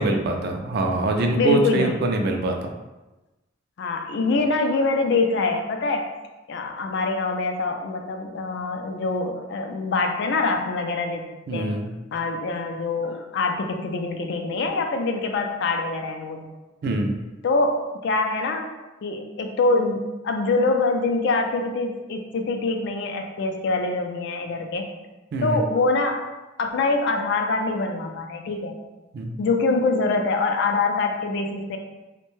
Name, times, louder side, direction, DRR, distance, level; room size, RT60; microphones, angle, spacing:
voice 1, 0.0-2.7 11.5-11.9 16.8-17.1 25.3-25.6 29.1-29.3, right 2 dB, 55° right, 3 dB, 0.3 m, -24 dB
voice 2, 1.3-1.9 3.8-6.1 6.5-11.2 11.5-11.7 12.1-16.4 17.4-18.7 19.0-24.9 25.4-26.2 26.6-28.8 29.4-31.8, left 3 dB, 65° left, 4 dB, 0.4 m, -24 dB
2.6 x 2.2 x 3.0 m, 1.1 s
head